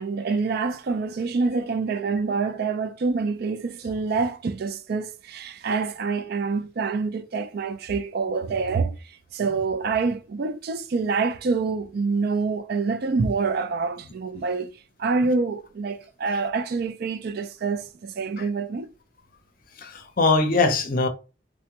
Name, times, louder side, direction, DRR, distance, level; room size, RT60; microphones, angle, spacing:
voice 1, 0.0-9.0 9.3-14.7 15.0-18.9, right 4 dB, 55° right, 0.3 m, -26 dB
voice 2, 19.8-21.1, left 3 dB, 45° left, 0.5 m, -22 dB
3.3 x 2.1 x 2.9 m
head